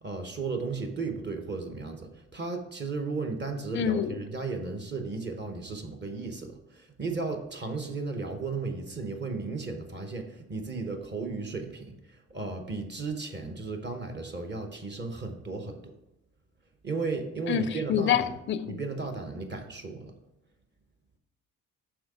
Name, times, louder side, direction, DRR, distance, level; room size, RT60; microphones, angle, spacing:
voice 1, 0.0-15.9 16.8-18.3 18.7-20.1, right 4 dB, 35° right, 1.0 m, -35 dB
voice 2, 3.7-4.2 17.5-18.8, left 9 dB, 40° left, 0.4 m, -27 dB
6.2 x 3.7 x 4.9 m
cardioid pair, 90°, 30 cm